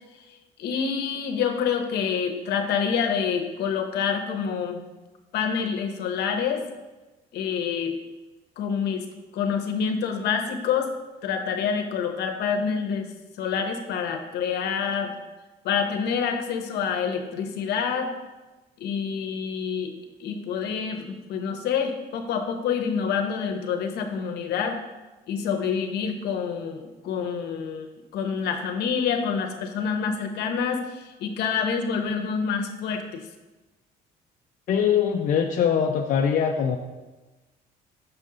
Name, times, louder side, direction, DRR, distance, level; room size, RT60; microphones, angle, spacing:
voice 1, 0.6-4.8 5.3-6.6 7.3-8.0 8.6-9.1 9.3-10.9 11.2-13.1 13.4-15.1 15.6-18.1 18.8-19.9 20.2-24.8 25.3-33.2, left 6 dB, 75° left, 5 dB, 0.9 m, -27 dB
voice 2, 34.7-36.8, left 7 dB, 55° left, 2 dB, 0.5 m, -22 dB
6.4 x 5.4 x 3.8 m, 1.1 s
cardioid pair, 110°, 17 cm